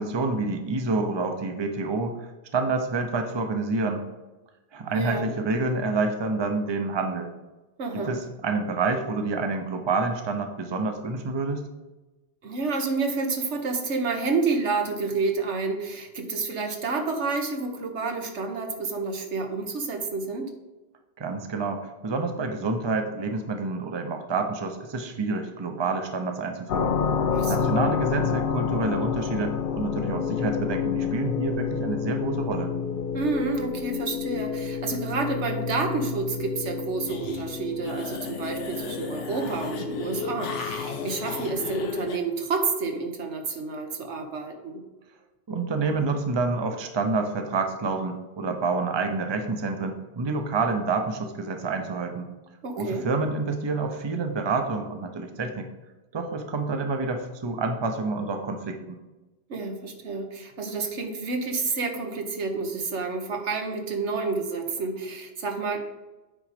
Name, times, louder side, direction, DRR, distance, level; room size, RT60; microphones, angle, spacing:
voice 1, 0.0-4.0 4.7-7.3 7.9-11.6 21.2-27.0 27.5-32.7 45.5-52.3 52.8-55.7 56.1-59.0, right 3 dB, 25° right, 5 dB, 0.7 m, -28 dB
voice 2, 4.9-5.3 7.8-8.1 12.4-20.5 27.3-27.8 33.1-44.8 52.6-53.0 59.5-65.8, right 4 dB, 80° right, 4 dB, 1.4 m, -29 dB
sound 1, 26.7-42.1, left 7 dB, 60° left, 0.6 m, -29 dB
sound 2, 37.1-37.5 37.8-42.2, left 4 dB, 90° left, 1.2 m, -37 dB
8.8 x 3.9 x 5.0 m, 1.1 s
omnidirectional pair, 1.2 m